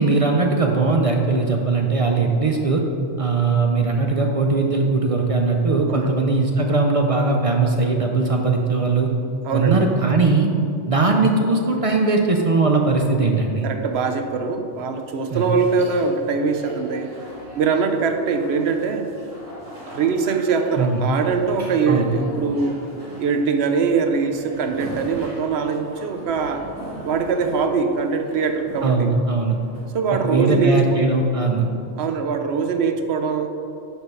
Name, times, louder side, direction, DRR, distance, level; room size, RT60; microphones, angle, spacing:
voice 1, 0.0-2.8 3.2-9.1 9.5-10.5 10.9-13.7 15.3-15.5 20.8-21.0 21.9-22.1 28.8-29.6 30.2-31.7, right 3 dB, 45° right, 2 dB, 0.4 m, -19 dB
voice 2, 9.4-9.9 13.6-17.1 17.6-19.1 19.9-22.8 23.2-26.6 27.0-29.1 29.9-31.0 32.0-33.5, right 5 dB, 65° right, 6 dB, 0.9 m, -22 dB
sound 1, 13.8-30.8, right 1 dB, 30° right, 1.5 m, -41 dB
10.5 x 3.6 x 5.3 m, 2.6 s
omnidirectional pair, 1.2 m